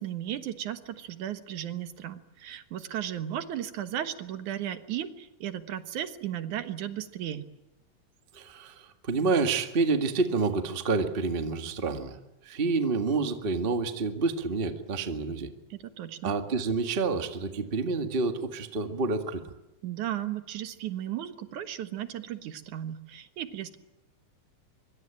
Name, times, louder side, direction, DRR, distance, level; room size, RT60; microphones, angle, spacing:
voice 1, 0.0-7.5 15.7-16.3 19.8-23.8, right 11 dB, 70° right, 10 dB, 2.7 m, -35 dB
voice 2, 8.3-12.2 12.4-15.5 16.2-19.4, right 4 dB, 25° right, 6 dB, 1.4 m, -28 dB
24.5 x 24.0 x 9.0 m, 0.98 s
omnidirectional pair, 3.6 m